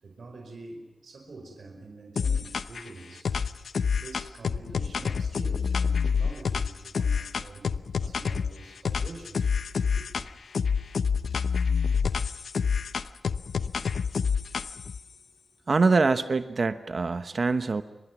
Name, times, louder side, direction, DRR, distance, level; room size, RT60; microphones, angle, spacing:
voice 1, 0.0-3.3 4.0-9.5 9.9-10.1, right 3 dB, 70° right, 3 dB, 4.8 m, -45 dB
sound 1, 2.2-2.9 3.2-8.5 8.8-10.3 10.5-15.0, left 6 dB, 85° left, 0.8 m, -27 dB
voice 2, 15.7-17.8, right 4 dB, 50° right, 10 dB, 1.0 m, -24 dB
29.5 x 25.0 x 6.0 m, 1.0 s
wide cardioid pair, 95°, 0 cm